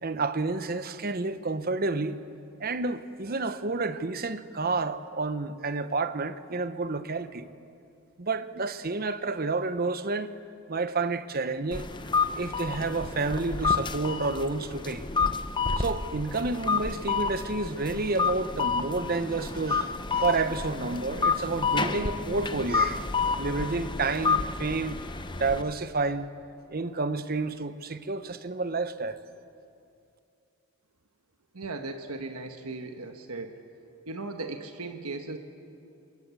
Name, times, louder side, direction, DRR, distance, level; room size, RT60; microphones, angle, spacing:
voice 1, 0.0-2.2 2.6-7.5 8.2-10.3 10.7-11.9 12.3-15.1 15.8-23.1 23.4-25.0 25.4-26.3 26.7-29.2, right 3 dB, 40° right, 0.9 m, -30 dB
sound 1, 11.7-25.6, left 4 dB, 20° left, 0.8 m, -30 dB
voice 2, 31.5-33.5 34.1-35.4, right 3 dB, 80° right, 1.4 m, -37 dB
26.0 x 21.5 x 8.3 m
head